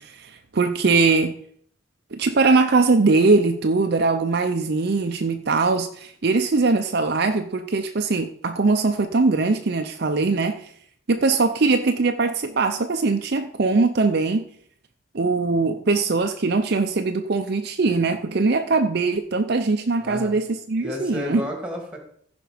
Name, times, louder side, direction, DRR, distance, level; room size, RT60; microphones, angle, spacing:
voice 1, 0.0-1.4 2.1-10.7 11.1-14.4 15.1-21.4, right 3 dB, 50° right, 6 dB, 0.6 m, -21 dB
voice 2, 20.0-20.4 20.8-22.0, left 1 dB, 5° right, 2 dB, 2.2 m, -32 dB
15.0 x 5.2 x 5.0 m, 0.63 s
head